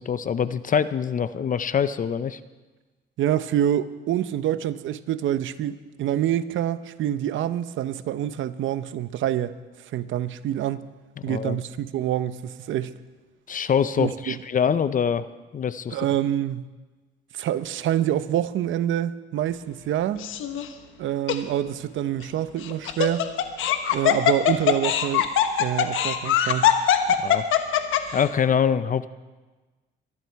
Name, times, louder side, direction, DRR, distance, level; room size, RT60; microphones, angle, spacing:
voice 1, 0.0-2.4 11.2-11.6 13.5-15.3 15.5-16.1 27.2-27.4 28.1-29.1, left 7 dB, 40° left, 0.6 m, -24 dB
voice 2, 3.2-9.5 9.9-10.8 11.2-12.9 14.0-14.4 15.9-16.7 17.3-20.3 21.0-23.3 23.9-25.3 25.6-26.7, right 11 dB, 75° right, 0.8 m, -26 dB
Laughter, 20.2-20.7 21.3-21.4 22.6-28.2, left 10 dB, 85° left, 1.1 m, -21 dB
23.5 x 11.0 x 4.7 m
cardioid pair, 90°, 20 cm